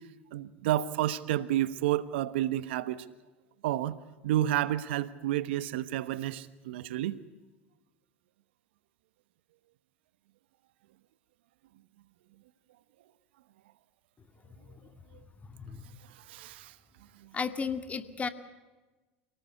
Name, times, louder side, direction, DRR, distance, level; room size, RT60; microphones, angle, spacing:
voice 1, 0.3-3.0 3.6-4.0 4.2-7.2 16.3-16.7, right 13 dB, 70° right, 16 dB, 1.1 m, -30 dB
voice 2, 14.7-15.0 15.5-16.0 17.3-18.3, left 5 dB, 20° left, 10 dB, 2.1 m, -35 dB
28.5 x 19.0 x 8.2 m, 1.2 s
hypercardioid pair, 85°, 6 cm